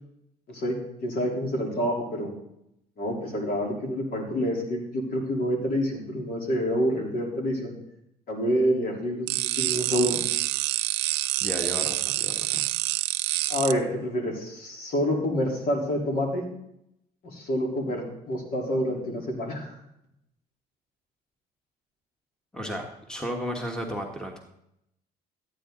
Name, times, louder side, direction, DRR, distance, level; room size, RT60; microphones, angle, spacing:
voice 1, 1.0-2.3 3.0-7.8 8.3-9.3 9.6-10.2 13.5-16.5 17.2-19.7, equal, 60° left, 0 dB, 3.6 m, -27 dB
sound 1, 9.3-13.7, right 17 dB, 90° right, 0.5 m, -27 dB
voice 2, 11.4-12.6 22.5-24.4, equal, 5° left, 2 dB, 1.4 m, -34 dB
14.0 x 9.2 x 3.9 m, 0.80 s
cardioid pair, 110°, 17 cm